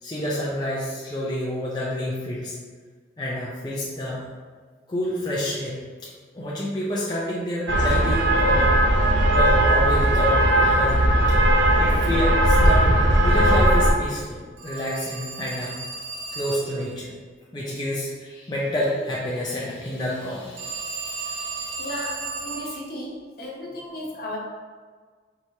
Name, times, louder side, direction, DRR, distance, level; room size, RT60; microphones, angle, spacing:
voice 1, 0.0-2.6 3.2-4.2 4.9-8.7 9.3-12.9 13.2-15.8 16.3-17.1 17.5-21.9, left 1 dB, 25° left, -6 dB, 0.5 m, -29 dB
sound 1, 7.7-13.9, right 1 dB, 90° right, 0.5 m, -18 dB
Telephone, 14.6-16.9 20.6-22.8, right 4 dB, 70° right, 1.4 m, -34 dB
voice 2, 21.8-24.4, left 1 dB, 55° left, -3 dB, 0.9 m, -34 dB
4.6 x 3.0 x 2.8 m, 1.5 s
head